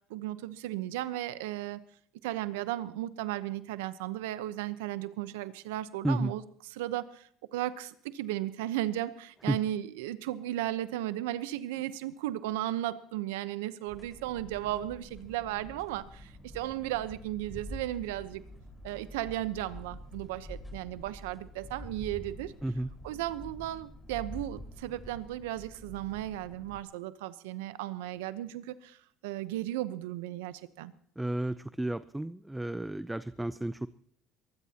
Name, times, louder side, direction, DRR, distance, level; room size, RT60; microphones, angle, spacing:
voice 1, 0.1-1.8 2.2-6.4 6.8-18.5 18.8-22.5 23.0-29.0 29.2-30.9, right 14 dB, 85° right, 14 dB, 0.9 m, -35 dB
sound 1, 13.9-26.8, equal, 15° left, 4.9 m, -47 dB
voice 2, 31.2-33.9, right 1 dB, 10° right, 14 dB, 0.6 m, -32 dB
22.5 x 19.5 x 2.9 m, 0.63 s
supercardioid pair, 80°, 0 cm